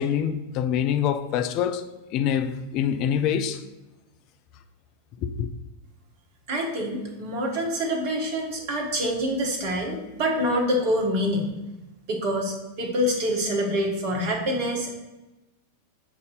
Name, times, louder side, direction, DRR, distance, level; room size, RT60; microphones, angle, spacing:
voice 1, 0.0-1.8 2.1-3.6 5.2-5.5, left 8 dB, 40° left, 0.4 m, -25 dB
voice 2, 6.5-11.5 12.1-14.9, equal, 45° right, 1.3 m, -26 dB
6.8 x 2.7 x 5.5 m
figure-of-eight pair, 90°, 0 cm